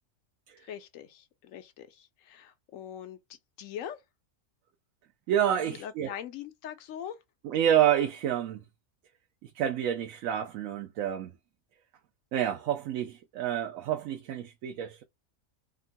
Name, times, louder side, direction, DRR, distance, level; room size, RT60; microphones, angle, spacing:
voice 1, 0.6-4.0 5.7-7.2, left 9 dB, 80° left, 1.0 m, -42 dB
voice 2, 5.3-6.1 7.4-8.6 9.4-11.3 12.3-15.0, right 10 dB, 85° right, 1.0 m, -28 dB
3.6 x 2.2 x 2.6 m
omnidirectional pair, 1.4 m